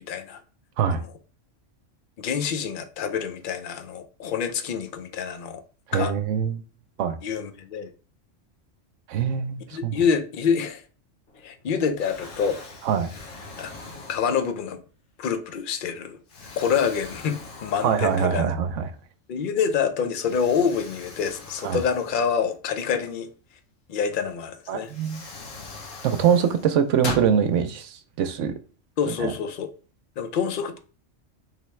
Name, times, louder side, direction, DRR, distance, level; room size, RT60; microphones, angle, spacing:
voice 1, 0.1-0.4 0.9-1.0 2.2-5.6 5.9-6.1 7.2-7.9 9.7-10.8 11.4-12.6 13.6-14.8 15.2-16.2 16.6-18.5 19.3-23.3 23.9-24.9 29.0-29.7 30.2-30.8, left 6 dB, 55° left, 0.6 m, -26 dB
voice 2, 5.9-6.6 7.0-7.2 9.1-10.0 12.8-13.1 17.8-18.8 21.6-21.8 24.7-25.2 26.0-28.5 29.2-29.3, right 8 dB, 80° right, 0.9 m, -23 dB
Explosion, 11.3-11.6 12.0-14.8 15.4-15.6 16.3-18.5 18.9-19.0 20.2-22.9 24.3-24.4 24.8-27.3, left 3 dB, 90° left, 1.2 m, -40 dB
4.7 x 3.3 x 3.1 m
omnidirectional pair, 1.3 m